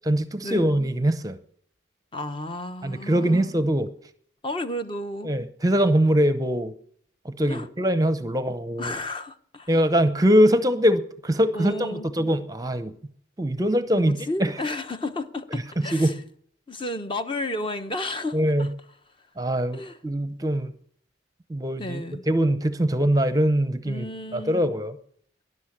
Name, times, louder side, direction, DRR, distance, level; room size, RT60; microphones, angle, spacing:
voice 1, 0.1-1.4 2.8-3.9 5.2-6.7 7.2-8.9 9.7-12.9 13.4-14.5 15.8-16.2 18.3-18.7 19.4-20.7 21.5-24.1 24.3-25.0, equal, 20° right, 0.7 m, -22 dB
voice 2, 2.1-3.5 4.4-5.3 7.4-7.7 8.8-9.7 11.5-12.0 13.9-16.1 16.7-18.7 19.7-20.0 21.8-22.2 23.8-24.7, left 1 dB, 25° left, 0.9 m, -32 dB
12.5 x 11.0 x 9.8 m
head